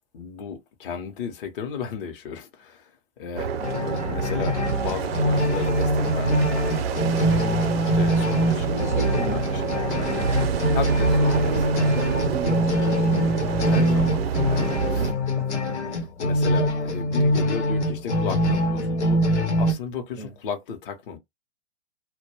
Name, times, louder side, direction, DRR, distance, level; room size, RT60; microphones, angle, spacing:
voice 1, 0.1-2.9 3.2-3.5 4.1-7.6 7.9-10.1 10.7-11.1 11.4-11.6 13.6-15.1 16.2-19.2 19.6-21.2, left 6 dB, 55° left, 0.7 m, -34 dB
sound 1, 3.4-15.1, right 7 dB, 60° right, 0.6 m, -27 dB
sound 2, 3.6-19.7, left 1 dB, 90° left, 0.9 m, -24 dB
voice 2, 8.4-10.3 11.0-14.2 14.9-16.1 20.2-20.3, right 2 dB, 5° left, 0.5 m, -35 dB
2.2 x 2.2 x 2.9 m
hypercardioid pair, 130°, 33 cm